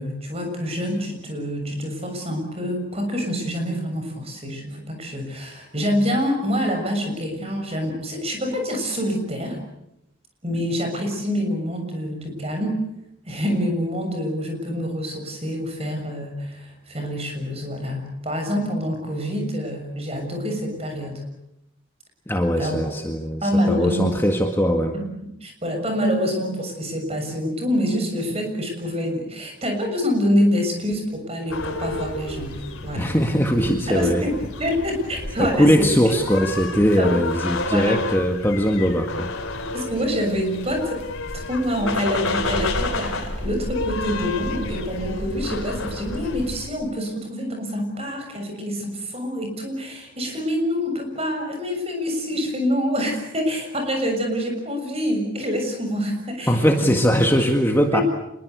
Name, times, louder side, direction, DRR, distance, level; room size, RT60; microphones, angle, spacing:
voice 1, 0.0-9.6 10.4-12.8 13.3-21.2 22.6-22.9 23.4-24.2 24.9-33.1 33.9-35.9 37.0-37.1 37.7-38.1 39.7-41.0 41.3-56.9 57.9-58.0, equal, 30° right, 4 dB, 6.7 m, -26 dB
voice 2, 22.3-24.9 33.0-34.3 35.4-39.3 56.5-58.0, equal, 10° left, 3 dB, 1.8 m, -20 dB
sound 1, 31.5-46.7, left 2 dB, 90° left, 3.5 m, -30 dB
26.5 x 22.0 x 8.2 m, 0.81 s
head